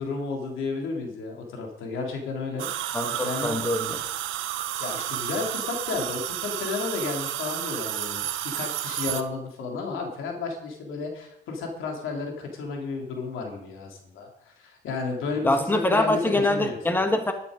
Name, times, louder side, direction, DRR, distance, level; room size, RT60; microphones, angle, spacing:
voice 1, 0.0-2.7 3.2-3.6 4.8-16.8, left 4 dB, 85° left, 1 dB, 3.3 m, -32 dB
sound 1, 2.6-9.2, right 12 dB, 85° right, 0.9 m, -31 dB
voice 2, 2.9-4.0 15.4-17.3, left 2 dB, 10° left, 5 dB, 1.7 m, -24 dB
12.0 x 11.0 x 5.2 m, 0.77 s
cardioid pair, 90°, 20 cm